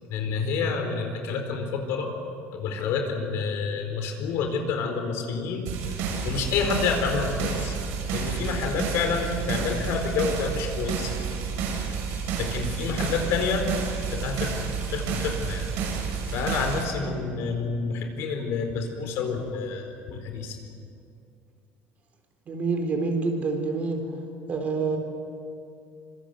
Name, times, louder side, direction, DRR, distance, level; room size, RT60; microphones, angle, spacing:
voice 1, 0.1-2.1 2.5-5.7 6.2-7.7 8.1-11.1 12.4-13.7 14.1-15.7 16.3-20.6, left 5 dB, 65° left, 5 dB, 4.3 m, -28 dB
sound 1, 5.7-16.8, right 6 dB, 75° right, 6.8 m, -30 dB
voice 2, 22.5-24.0 24.5-25.0, right 4 dB, 35° right, 4 dB, 4.0 m, -27 dB
26.0 x 25.0 x 7.9 m, 2.5 s
cardioid pair, 155°, 5 cm